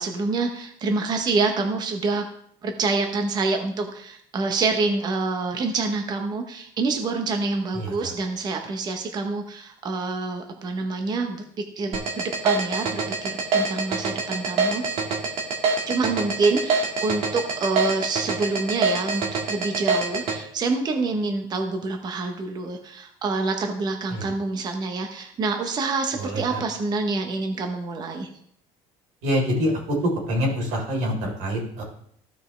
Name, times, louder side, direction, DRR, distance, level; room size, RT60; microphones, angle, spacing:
voice 1, 0.0-2.2 2.6-11.4 11.8-14.8 15.9-28.3, right 3 dB, 30° right, 4 dB, 1.0 m, -27 dB
voice 2, 7.7-8.1 24.1-24.3 26.2-26.6 29.2-30.0 30.3-31.8, equal, 70° right, 0 dB, 3.7 m, -26 dB
sound 1, 11.9-20.3, right 4 dB, 50° right, 1.8 m, -24 dB
15.0 x 5.4 x 3.3 m, 0.65 s
cardioid pair, 145°, 13 cm